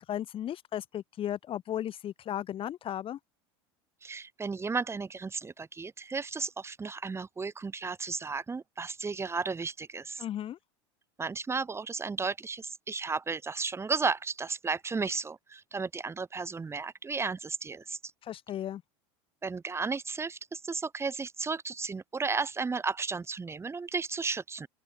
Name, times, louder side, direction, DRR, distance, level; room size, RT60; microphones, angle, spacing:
voice 1, 0.0-3.2 10.2-10.6 18.2-18.8, left 11 dB, 40° left, 2.1 m, -35 dB
voice 2, 4.0-10.2 11.2-18.0 19.4-24.7, right 4 dB, 20° right, 3.4 m, -34 dB
open air
hypercardioid pair, 100°, 14 cm